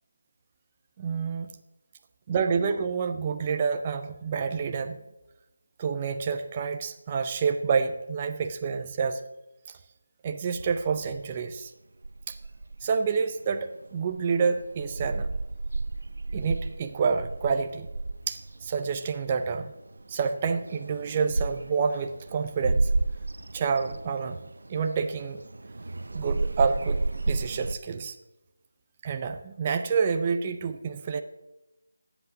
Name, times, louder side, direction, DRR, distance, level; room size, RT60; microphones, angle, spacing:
voice 1, 1.0-1.5 2.3-5.0 5.8-9.2 10.2-11.7 12.3-12.4 12.8-15.3 16.3-17.9 18.3-19.7 20.1-22.9 23.5-24.4 24.7-25.4 26.1-28.2 29.0-31.2, right 5 dB, 15° right, 6 dB, 0.5 m, -28 dB
sound 1, 10.6-11.6 12.0-13.1 13.4-19.1 19.4-19.5 19.6-27.8, right 3 dB, 65° right, 0.5 m, -32 dB
10.5 x 8.0 x 9.9 m, 0.99 s
figure-of-eight pair, 180°, 0 cm